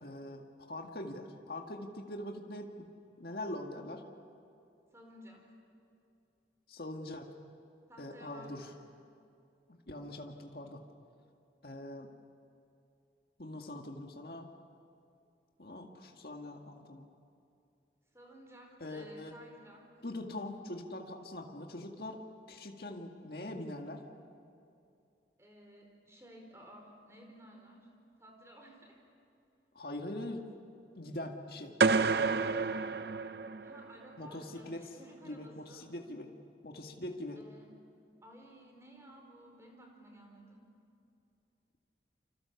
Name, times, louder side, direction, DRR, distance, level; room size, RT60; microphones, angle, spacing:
voice 1, 0.0-2.9 3.2-4.0 6.7-7.3 8.0-8.7 9.7-10.8 11.6-12.1 13.4-14.5 15.6-17.1 18.8-19.3 20.0-22.2 22.5-24.0 29.8-30.5 30.9-32.0 34.2-34.9 35.2-36.3 36.6-37.4, left 1 dB, 55° left, 2 dB, 1.9 m, -43 dB
voice 2, 4.9-5.5 7.9-8.8 18.1-20.0 25.4-27.9 28.2-29.0 33.6-35.9 37.4-37.7 38.2-40.7, equal, 15° right, 1 dB, 4.6 m, -55 dB
sound 1, 31.8-33.9, right 4 dB, 65° right, 0.7 m, -29 dB
29.0 x 26.0 x 7.1 m, 2.6 s
head